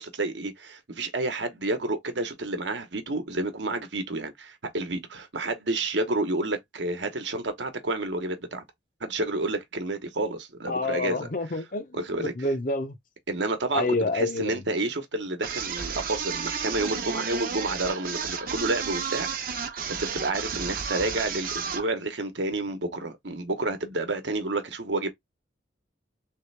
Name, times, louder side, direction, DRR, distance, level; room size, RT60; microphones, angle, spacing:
voice 1, 0.0-8.6 9.0-11.3 11.9-12.3 13.3-13.9 14.1-19.6 19.9-25.1, right 2 dB, 70° right, 1.0 m, -30 dB
voice 2, 10.7-13.0 13.7-14.6, left 2 dB, 45° left, 0.7 m, -28 dB
sound 1, 15.4-21.9, right 6 dB, 50° right, 0.7 m, -32 dB
3.4 x 3.4 x 3.3 m
head